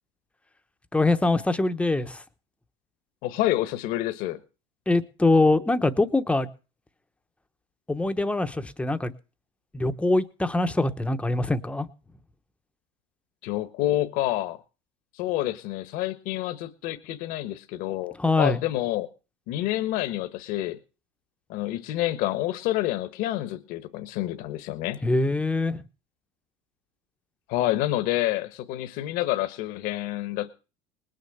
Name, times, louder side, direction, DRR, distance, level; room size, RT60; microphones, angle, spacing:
voice 1, 0.9-2.2 4.9-6.5 7.9-9.1 9.7-11.9 18.2-18.6 25.0-25.8, left 2 dB, 5° left, 0.9 m, -23 dB
voice 2, 3.2-4.4 13.4-14.6 15.1-19.1 19.5-20.8 21.5-25.0 27.5-30.5, left 15 dB, 65° left, 1.3 m, -28 dB
19.5 x 6.7 x 8.0 m
supercardioid pair, 135°, 16 cm